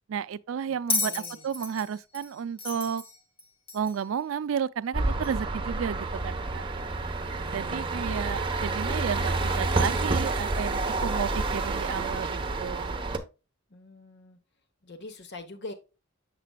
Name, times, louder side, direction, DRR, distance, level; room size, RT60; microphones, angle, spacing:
voice 1, 0.1-3.0 3.7-6.7 7.5-13.0, right 7 dB, 80° right, 0.4 m, -32 dB
voice 2, 0.7-1.4 7.9-9.0 13.7-14.4 14.8-15.7, left 2 dB, 60° left, 0.9 m, -45 dB
Bell, 0.9-4.1 5.2-5.3, left 3 dB, 25° left, 1.2 m, -33 dB
sound 1, 4.9-13.2, right 3 dB, 25° right, 0.9 m, -29 dB
7.4 x 6.7 x 2.2 m
head